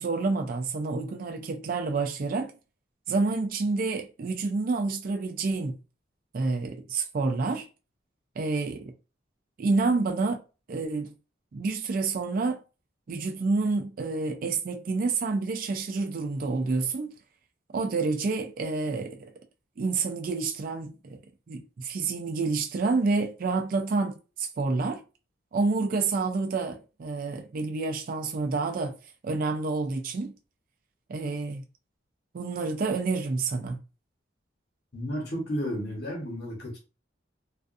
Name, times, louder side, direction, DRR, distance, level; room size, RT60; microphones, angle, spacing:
voice 1, 0.0-2.5 3.1-5.8 6.3-7.7 8.4-8.9 9.6-10.4 10.7-11.1 11.5-12.6 13.1-17.1 17.7-19.3 19.8-21.2 21.5-25.0 25.5-28.9 29.2-30.3 31.1-31.6 32.3-33.8, right 3 dB, 50° right, 0.4 m, -28 dB
voice 2, 34.9-36.8, equal, 55° left, 1.1 m, -32 dB
2.4 x 2.3 x 2.5 m
head